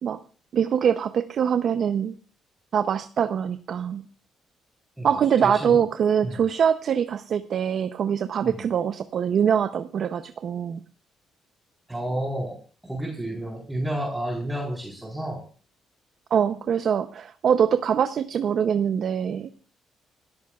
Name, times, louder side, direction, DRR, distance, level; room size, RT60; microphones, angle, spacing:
voice 1, 0.5-2.1 2.7-4.1 5.0-10.8 16.3-19.5, right 8 dB, 60° right, 10 dB, 0.6 m, -23 dB
voice 2, 5.0-5.8 6.2-6.4 8.4-8.6 11.9-12.6 12.8-15.4, right 1 dB, 10° right, -1 dB, 3.8 m, -31 dB
26.5 x 13.5 x 2.4 m, 0.40 s
cardioid pair, 90°, 0 cm